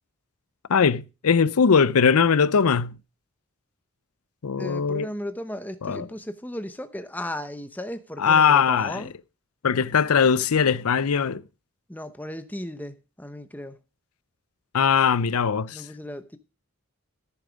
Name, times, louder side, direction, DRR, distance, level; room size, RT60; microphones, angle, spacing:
voice 1, 0.7-3.0 4.4-5.1 5.8-6.1 8.2-9.1 9.6-11.4 14.7-15.9, left 6 dB, 85° left, 0.6 m, -20 dB
voice 2, 4.5-9.1 11.9-13.8 15.7-16.4, left 1 dB, 10° left, 0.9 m, -36 dB
14.0 x 7.0 x 5.1 m
head